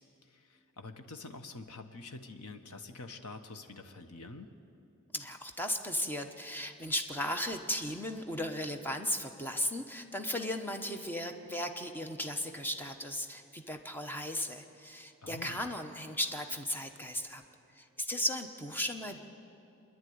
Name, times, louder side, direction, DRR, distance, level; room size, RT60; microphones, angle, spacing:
voice 1, 0.3-4.5 15.2-15.6, left 3 dB, 85° left, 7 dB, 1.2 m, -47 dB
voice 2, 5.1-17.4 17.7-19.2, left 1 dB, 10° left, 5 dB, 1.0 m, -36 dB
26.0 x 11.0 x 9.5 m, 2.8 s
head